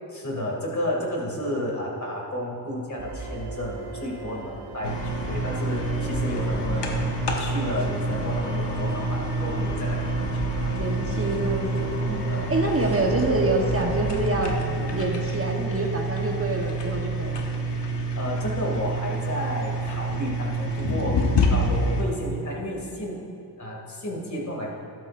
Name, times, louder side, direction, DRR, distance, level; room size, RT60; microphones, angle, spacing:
voice 1, 0.1-10.7 12.3-12.7 18.2-23.2 23.6-24.7, left 1 dB, 45° left, -2 dB, 2.5 m, -32 dB
sound 1, 3.0-18.2, right 2 dB, 75° right, 1.5 m, -37 dB
sound 2, 4.8-22.0, right 1 dB, 90° left, 1.2 m, -27 dB
voice 2, 10.7-12.2 12.5-14.5 14.9-17.4, right 2 dB, 35° right, 1 dB, 1.2 m, -26 dB
13.0 x 12.0 x 2.6 m, 2.6 s
wide cardioid pair, 80°, 41 cm